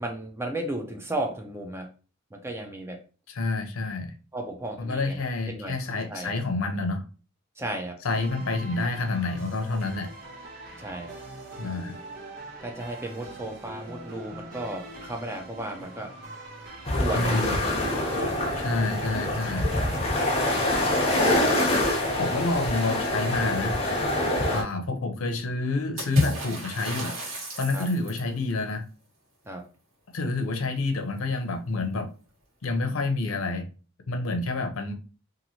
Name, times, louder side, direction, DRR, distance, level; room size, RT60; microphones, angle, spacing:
voice 1, 0.0-1.9 2.3-3.0 4.3-5.2 5.5-5.8 6.1-6.3 7.6-8.0 10.8-11.2 12.6-16.2 17.0-17.4 18.2-18.5 24.4-24.6 27.7-27.9 29.4-29.6, right 1 dB, 10° right, 3 dB, 0.4 m, -34 dB
voice 2, 3.3-4.1 4.8-7.0 8.0-10.1 11.6-11.9 17.1-17.6 18.5-19.7 22.2-23.8 24.5-27.1 27.6-28.8 30.1-32.1 32.6-33.7 34.1-34.9, left 3 dB, 75° left, 6 dB, 0.5 m, -28 dB
sound 1, 8.1-21.8, right 2 dB, 45° right, 0.9 m, -42 dB
sound 2, 16.9-24.6, left 1 dB, 30° left, 0.6 m, -25 dB
Water / Splash splatter, 26.0-28.3, left 1 dB, 80° right, 1.2 m, -30 dB
2.9 x 2.5 x 2.7 m, 0.36 s
head